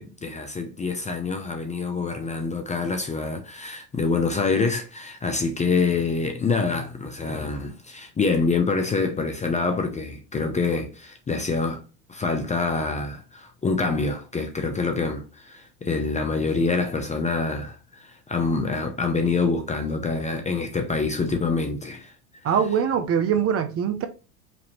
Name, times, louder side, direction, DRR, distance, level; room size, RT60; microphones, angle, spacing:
voice 1, 0.0-11.8 12.1-22.1, left 4 dB, 15° left, 0.6 m, -26 dB
voice 2, 22.4-24.1, right 8 dB, 30° right, 0.6 m, -22 dB
5.2 x 2.8 x 3.0 m
hypercardioid pair, 85°, 50 cm